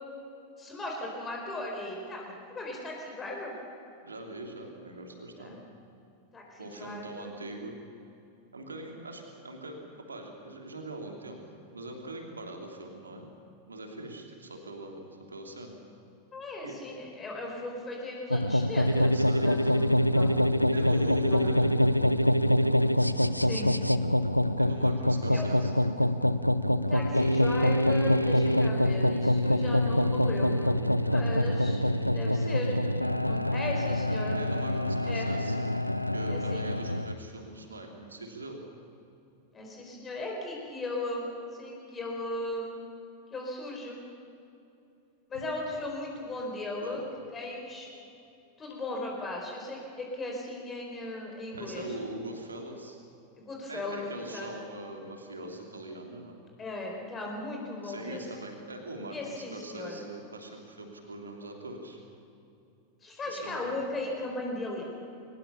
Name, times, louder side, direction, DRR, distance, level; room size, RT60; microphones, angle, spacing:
voice 1, 0.6-3.5 5.4-5.6 6.3-7.3 16.3-19.1 19.4-20.4 21.2-21.5 23.4-23.7 25.3-25.5 26.7-30.9 31.1-31.8 32.1-32.7 33.2-34.4 35.0-35.3 36.3-36.7 39.5-42.8 43.3-44.0 45.3-47.0 47.3-47.9 48.6-52.0 53.4-54.5 56.6-58.2 59.1-60.0 63.0-64.9, left 2 dB, 20° left, 0 dB, 4.7 m, -37 dB
voice 2, 4.0-5.6 6.6-7.8 8.5-9.8 10.1-11.4 11.7-13.3 13.7-15.8 16.6-16.8 19.1-19.7 20.3-21.7 24.6-25.7 34.3-35.7 36.1-38.6 46.8-47.0 51.5-53.0 53.7-56.4 57.8-62.0 63.2-63.7, right 2 dB, 75° right, 2 dB, 3.0 m, -42 dB
sound 1, 18.3-37.1, left 1 dB, 90° left, 0.5 m, -25 dB
22.5 x 20.0 x 7.0 m, 2.7 s
figure-of-eight pair, 90°, 0 cm